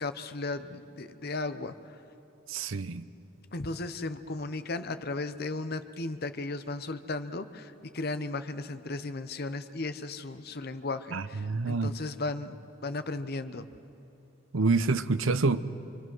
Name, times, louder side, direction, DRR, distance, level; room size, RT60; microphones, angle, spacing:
voice 1, 0.0-1.7 3.5-12.5 12.8-13.7, left 2 dB, 50° left, 11 dB, 0.9 m, -35 dB
voice 2, 2.5-3.1 11.1-11.9 14.5-15.6, right 3 dB, 75° right, 14 dB, 0.7 m, -27 dB
26.0 x 24.5 x 6.2 m, 2.7 s
head